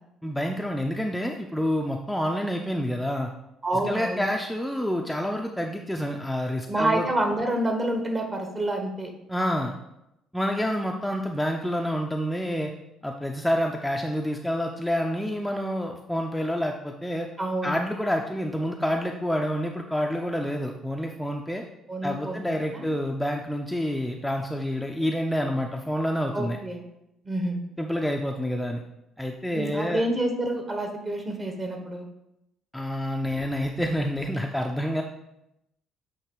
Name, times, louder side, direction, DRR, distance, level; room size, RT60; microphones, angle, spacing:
voice 1, 0.2-3.3 3.7-7.3 9.3-9.7 10.3-12.7 13.0-17.3 17.6-21.6 22.0-26.6 27.8-28.8 29.2-30.0 32.7-35.0, equal, 5° left, 1 dB, 0.6 m, -28 dB
voice 2, 3.6-4.3 6.7-9.1 17.4-17.8 21.9-22.8 26.3-26.8 27.2-27.6 29.5-32.1, right 1 dB, 30° right, 3 dB, 1.4 m, -28 dB
8.5 x 3.0 x 4.7 m, 0.85 s
figure-of-eight pair, 50°, 0 cm